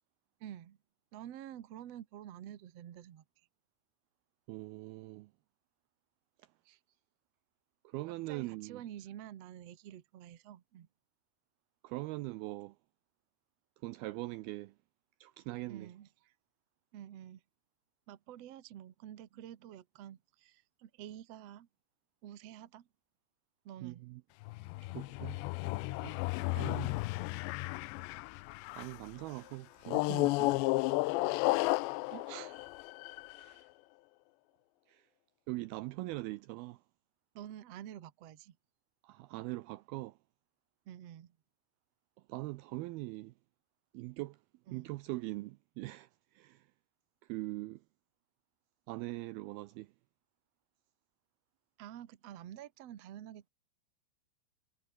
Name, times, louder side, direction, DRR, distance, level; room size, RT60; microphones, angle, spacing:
voice 1, 0.4-0.8 1.1-3.2 6.6-6.8 8.1-10.9 15.7-16.3 16.9-17.4 18.1-21.7 22.2-22.9 23.6-24.0 32.1-32.7 33.4-33.7 37.3-38.6 40.9-41.4 44.7-44.9 51.8-53.5, right 11 dB, 65° right, 1.6 m, -49 dB
voice 2, 4.5-5.3 7.9-8.8 11.8-12.8 13.8-14.7 15.2-15.9 23.8-24.2 24.9-25.4 26.0-26.2 26.5-27.0 28.8-30.6 34.9-35.1 35.5-36.8 39.0-40.2 42.3-43.3 43.9-44.4 44.7-46.7 47.3-47.8 48.9-49.9, right 20 dB, 90° right, 2.2 m, -42 dB
sound 1, 24.4-29.1 29.9-33.5, left 22 dB, 85° left, 2.8 m, -33 dB
omnidirectional pair, 5.1 m